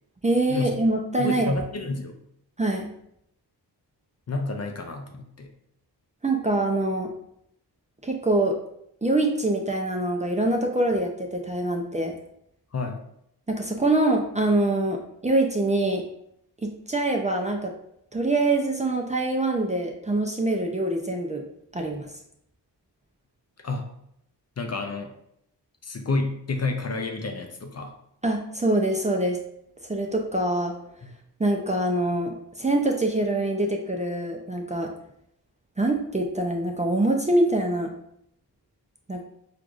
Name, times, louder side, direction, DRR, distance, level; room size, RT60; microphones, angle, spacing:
voice 1, 0.2-1.5 2.6-2.9 6.2-7.1 8.0-8.6 9.0-12.1 13.5-16.0 16.6-17.7 18.1-21.4 21.7-22.1 28.2-29.4 29.9-30.7 31.4-34.9 35.8-37.9 39.1-39.2, right 2 dB, 15° right, 1 dB, 0.5 m, -24 dB
voice 2, 1.2-2.2 4.3-5.5 12.7-13.0 23.6-23.9 24.6-25.1 25.8-27.9 31.0-31.1, left 3 dB, 40° left, 4 dB, 0.5 m, -30 dB
4.5 x 2.5 x 2.4 m, 0.74 s
cardioid pair, 50°, 43 cm